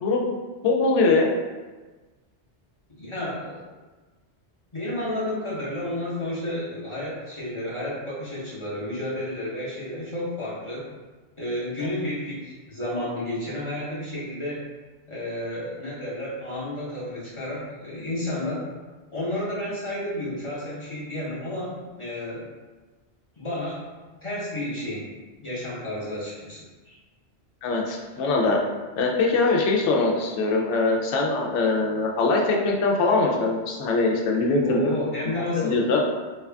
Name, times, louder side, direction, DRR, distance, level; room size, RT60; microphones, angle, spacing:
voice 1, 0.6-1.3 11.8-11.9 27.6-28.6 29.0-34.8 35.6-36.0, left 3 dB, 80° left, -1 dB, 0.9 m, -22 dB
voice 2, 3.0-3.6 4.7-10.9 11.4-14.6 15.1-18.6 19.1-22.5 23.4-23.8 24.2-25.1 25.4-27.0 34.6-35.8, left 1 dB, 30° left, -8 dB, 0.8 m, -31 dB
3.2 x 2.3 x 3.3 m, 1.3 s
omnidirectional pair, 1.2 m